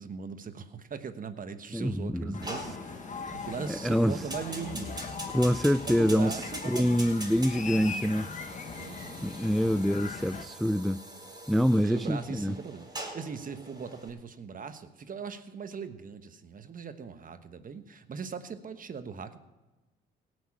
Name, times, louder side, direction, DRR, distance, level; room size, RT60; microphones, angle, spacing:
voice 1, 0.0-5.2 5.9-7.0 8.8-9.4 11.8-19.4, right 6 dB, 40° right, 1.3 m, -40 dB
voice 2, 1.7-2.7 3.7-4.2 5.3-6.4 6.7-8.3 9.2-11.0 11.5-12.5, equal, ahead, 0.3 m, -26 dB
sound 1, 2.3-10.4, left 5 dB, 35° left, 1.2 m, -40 dB
Fire, 2.4-14.1, right 1 dB, 20° right, 4.5 m, -44 dB
17.5 x 6.3 x 8.7 m
supercardioid pair, 70°, 21 cm